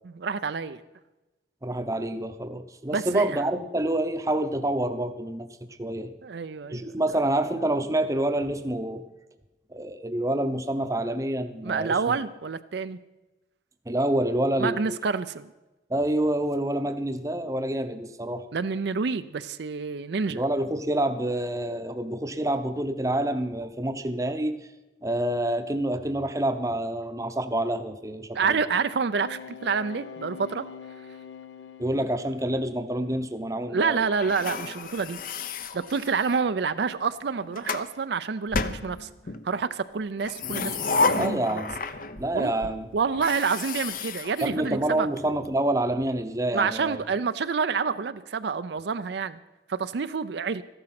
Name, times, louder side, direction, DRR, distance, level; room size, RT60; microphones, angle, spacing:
voice 1, 0.0-0.8 2.9-3.4 6.2-7.0 11.6-13.0 14.6-15.5 18.5-20.4 28.3-30.6 33.7-35.2 35.7-39.1 39.4-41.6 42.3-42.5 42.9-45.1 46.5-49.4 49.7-50.6, right 5 dB, 65° right, 11 dB, 0.5 m, -28 dB
voice 2, 1.6-5.5 5.8-6.1 6.7-9.0 9.7-12.0 13.9-15.0 15.9-18.4 20.3-24.6 25.0-28.6 31.8-34.1 41.2-41.8 42.2-42.9 44.4-47.0, right 1 dB, 15° right, 8 dB, 0.7 m, -27 dB
sound 1, 29.2-33.0 33.5-33.8, left 6 dB, 80° left, 0.9 m, -44 dB
sound 2, 34.2-36.5 37.2-37.9 38.5-39.4 40.2-42.3 42.6-42.7 43.1-45.2, left 4 dB, 50° left, 0.7 m, -31 dB
14.0 x 11.5 x 5.9 m, 1.1 s
head